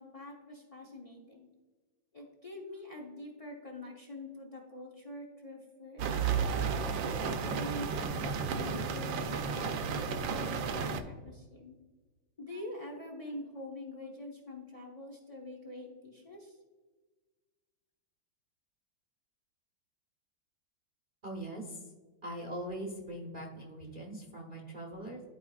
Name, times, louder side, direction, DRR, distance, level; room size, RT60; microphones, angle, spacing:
voice 1, 0.0-1.5 2.1-6.1 6.9-11.7 12.4-16.6, left 1 dB, 45° left, 0 dB, 0.4 m, -45 dB
sound 1, 6.0-11.0, right 6 dB, 75° right, 1.3 m, -33 dB
voice 2, 21.2-21.9 22.2-25.2, right 1 dB, 40° right, -1 dB, 0.8 m, -41 dB
11.5 x 4.6 x 2.3 m, 1.3 s
omnidirectional pair, 2.2 m